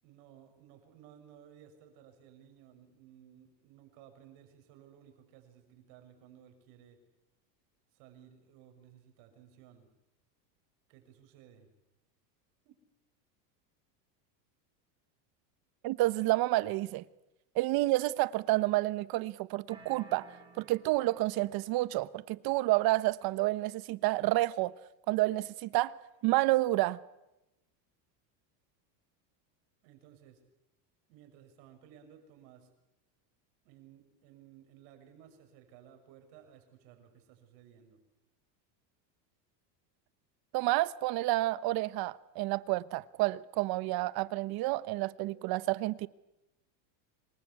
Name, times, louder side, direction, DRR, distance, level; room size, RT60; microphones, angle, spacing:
voice 1, 0.0-7.0 7.9-9.9 10.9-11.7 12.6-12.8 29.8-30.4 31.1-32.7 33.6-38.0, right 9 dB, 60° right, 6.2 m, -57 dB
voice 2, 15.8-17.0 17.5-20.3 20.6-24.7 25.1-25.9 26.2-27.0 40.5-46.1, right 18 dB, 45° right, 1.0 m, -29 dB
sound 1, 19.7-21.6, right 4 dB, 10° right, 7.0 m, -55 dB
26.5 x 22.0 x 8.4 m
supercardioid pair, 140°, 50 cm